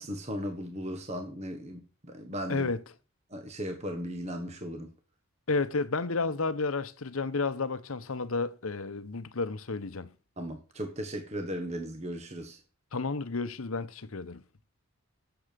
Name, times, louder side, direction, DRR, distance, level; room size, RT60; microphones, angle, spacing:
voice 1, 0.0-2.7 3.3-4.9 10.4-12.6, equal, 30° right, 1.4 m, -37 dB
voice 2, 2.5-2.8 5.5-10.1 12.9-14.4, left 3 dB, 70° left, 0.9 m, -31 dB
9.9 x 7.1 x 6.8 m
head